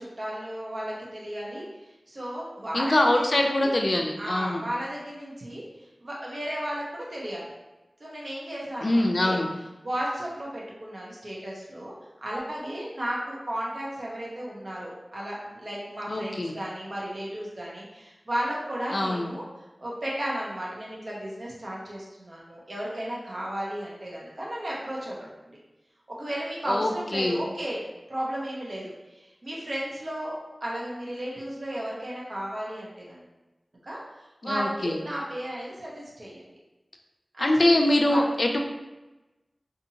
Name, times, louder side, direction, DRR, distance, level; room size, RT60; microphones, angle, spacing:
voice 1, 0.0-3.7 4.2-7.5 8.0-9.4 9.8-11.9 12.2-19.4 19.8-25.6 26.1-27.8 28.1-33.2 33.8-36.5 37.3-38.3, equal, 60° right, -5 dB, 0.7 m, -34 dB
voice 2, 2.7-4.6 8.8-9.5 16.1-16.5 18.9-19.3 26.7-27.4 34.4-35.0 37.4-38.6, left 1 dB, 55° left, 2 dB, 0.4 m, -23 dB
2.7 x 2.5 x 2.8 m, 1.1 s
wide cardioid pair, 65°, 0 cm